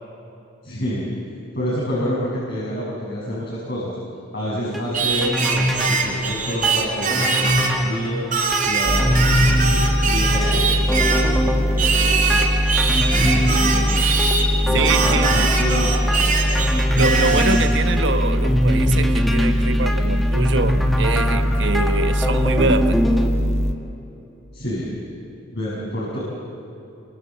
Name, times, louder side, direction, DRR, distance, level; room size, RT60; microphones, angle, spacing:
voice 1, 0.6-1.1 1.5-4.0 4.3-8.2 8.7-12.5 13.2-14.1 14.6-16.4 24.5-24.9 25.5-26.2, equal, 55° left, 7.0 m, -28 dB
sound 1, 4.7-23.3, equal, ahead, 1.9 m, -24 dB
Singing, 4.9-7.8 8.3-11.3 11.8-14.5 14.8-17.7, right 5 dB, 45° right, 4.1 m, -22 dB
sound 2, 8.8-23.7, equal, 35° left, 1.5 m, -21 dB
voice 2, 14.7-15.5 16.9-23.0, right 3 dB, 60° right, 1.2 m, -24 dB
29.0 x 25.0 x 7.8 m
head